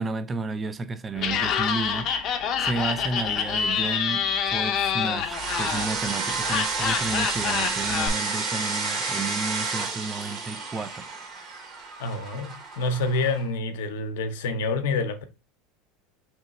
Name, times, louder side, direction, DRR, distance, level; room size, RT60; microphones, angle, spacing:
voice 1, 0.0-2.2 2.6-11.1, right 3 dB, 20° right, 0.3 m, -32 dB
Laughter, 1.2-8.1, left 7 dB, 45° left, 0.6 m, -27 dB
sound 1, 5.3-13.4, right 4 dB, 45° right, 1.1 m, -30 dB
voice 2, 12.0-15.2, left 3 dB, 85° left, 0.6 m, -27 dB
3.0 x 2.9 x 4.1 m
supercardioid pair, 110°, 0 cm